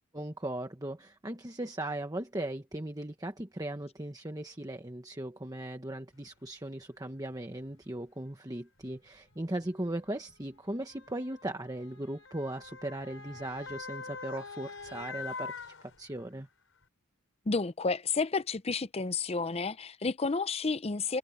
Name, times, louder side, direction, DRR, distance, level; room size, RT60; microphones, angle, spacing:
voice 1, 0.1-16.5, right 1 dB, 15° right, 1.2 m, -38 dB
Motor vehicle (road) / Siren, 6.5-6.6 7.5-7.7 8.8-16.4 16.8-16.9, left 4 dB, 60° left, 7.2 m, -45 dB
voice 2, 17.5-21.2, left 4 dB, 25° left, 0.6 m, -31 dB
head